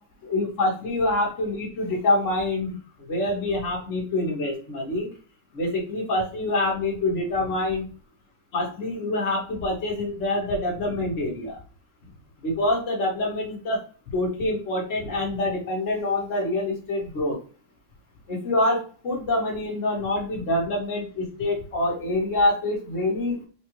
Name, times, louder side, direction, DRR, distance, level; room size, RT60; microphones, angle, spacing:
voice 1, 0.2-5.1 5.5-7.8 8.5-11.6 12.4-13.8 14.1-17.4 18.3-23.4, left 1 dB, 45° left, -3 dB, 1.8 m, -26 dB
5.2 x 2.4 x 3.0 m, 0.38 s
omnidirectional pair, 1.9 m